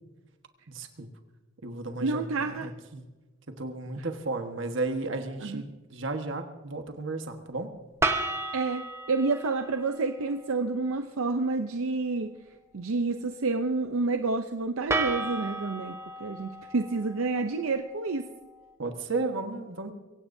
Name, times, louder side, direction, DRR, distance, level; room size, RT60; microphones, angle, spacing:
voice 1, 0.7-1.1 1.6-3.0 3.6-7.7 18.8-19.9, right 3 dB, 65° right, 6 dB, 1.4 m, -34 dB
voice 2, 2.0-2.7 4.0-4.1 5.4-5.6 8.5-12.3 12.7-18.3, right 3 dB, 85° right, 7 dB, 0.6 m, -29 dB
sound 1, 8.0-10.1 14.9-18.1, right 2 dB, 15° right, 0.9 m, -33 dB
23.5 x 16.5 x 2.7 m, 1.2 s
head